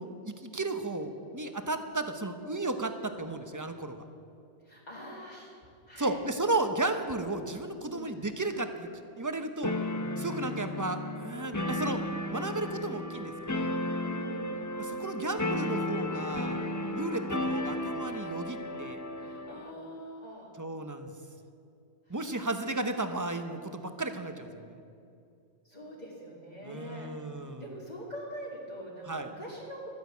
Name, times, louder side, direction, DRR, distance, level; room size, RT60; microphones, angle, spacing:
voice 1, 0.0-4.0 6.0-9.7 10.2-12.0 12.3-13.7 14.8-16.6 16.9-19.0 20.6-21.1 22.1-24.8 26.6-27.7 29.1-29.3, right 2 dB, 20° right, 8 dB, 0.8 m, -34 dB
voice 2, 4.6-5.6 5.9-6.1 7.9-8.1 10.1-10.4 14.0-14.7 16.7-17.1 19.2-20.5 22.1-22.2 25.6-27.1 27.6-29.9, equal, 40° left, -6 dB, 2.2 m, -44 dB
sound 1, 9.6-19.7, left 1 dB, 20° left, 0.6 m, -34 dB
12.5 x 9.6 x 8.3 m, 2.5 s
omnidirectional pair, 1.2 m